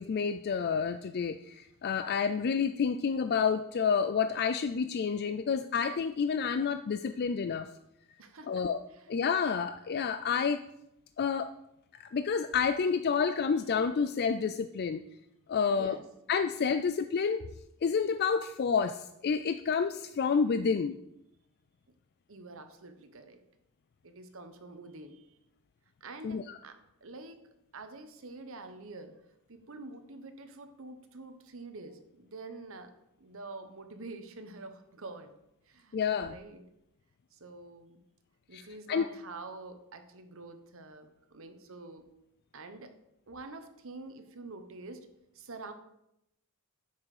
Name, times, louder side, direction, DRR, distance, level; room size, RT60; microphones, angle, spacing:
voice 1, 0.0-7.7 8.5-8.8 9.1-10.6 11.2-11.5 12.0-15.0 15.5-16.0 16.3-17.4 17.8-21.0 26.2-26.6 35.9-36.4 38.5-38.6 38.9-39.1, left 6 dB, 45° left, 9 dB, 0.4 m, -29 dB
voice 2, 8.2-8.6 8.9-9.1 15.7-16.0 22.3-23.4 24.0-25.4 26.0-27.4 27.7-29.1 29.5-32.9 33.2-35.3 35.7-36.0 36.2-36.6 37.3-38.0 38.5-42.0 42.5-42.9 43.3-45.1 45.3-45.7, right 3 dB, 65° right, 8 dB, 1.0 m, -46 dB
9.8 x 7.3 x 4.9 m, 0.83 s
head